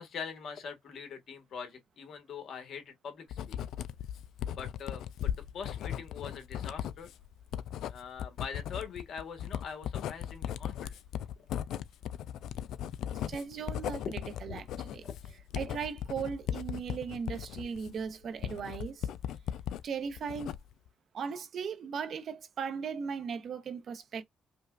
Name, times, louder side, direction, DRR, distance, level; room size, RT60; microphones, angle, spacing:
voice 1, 0.0-3.6 4.5-7.1 7.9-11.0 11.4-11.5 14.0-14.1 14.4-14.6 15.0-15.4, left 6 dB, 65° left, 1.3 m, -43 dB
Writing, 3.3-19.8 20.2-20.9, left 10 dB, 80° left, 0.3 m, -37 dB
voice 2, 13.3-14.1 14.4-15.0 15.5-19.1 19.8-20.6 21.1-24.2, right 6 dB, 60° right, 0.8 m, -37 dB
5.3 x 2.2 x 2.4 m
cardioid pair, 90°, 0 cm